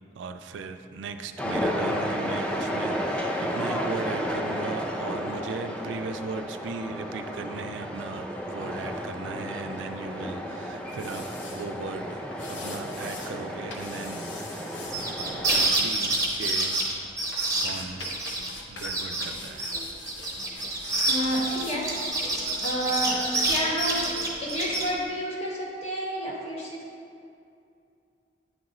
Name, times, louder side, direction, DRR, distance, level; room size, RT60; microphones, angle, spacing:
voice 1, 0.1-16.8 17.6-18.1 18.7-19.8, right 4 dB, 90° right, 8 dB, 0.3 m, -38 dB
sound 1, 1.4-15.7, equal, 5° left, 0.3 m, -32 dB
sound 2, 10.9-11.7 12.3-13.3 13.7-15.1 15.5-16.8 17.3-18.9 19.2-21.8 22.1-22.2, left 3 dB, 85° left, 0.6 m, -43 dB
sound 3, 14.9-18.5 18.8-19.2 19.6-24.9, right 2 dB, 15° right, 0.7 m, -27 dB
voice 2, 21.1-21.9 22.6-24.1 24.4-26.9, right 1 dB, 35° left, -3 dB, 1.0 m, -30 dB
8.8 x 3.7 x 3.0 m, 2.5 s
head